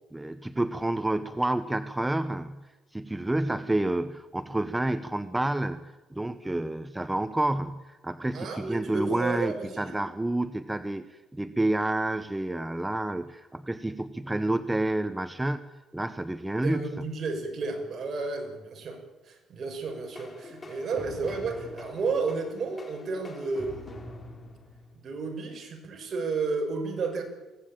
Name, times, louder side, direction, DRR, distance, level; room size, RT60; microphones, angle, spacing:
voice 1, 0.1-2.6 2.9-16.8, right 1 dB, 10° right, 11 dB, 0.9 m, -29 dB
voice 2, 8.3-10.0 16.6-19.0 19.2-24.0 24.9-27.2, right 4 dB, 45° right, 3 dB, 6.3 m, -32 dB
sound 1, 19.8-25.3, left 2 dB, 25° left, 4.4 m, -44 dB
23.0 x 17.0 x 8.9 m, 1.2 s
cardioid pair, 115°, 0 cm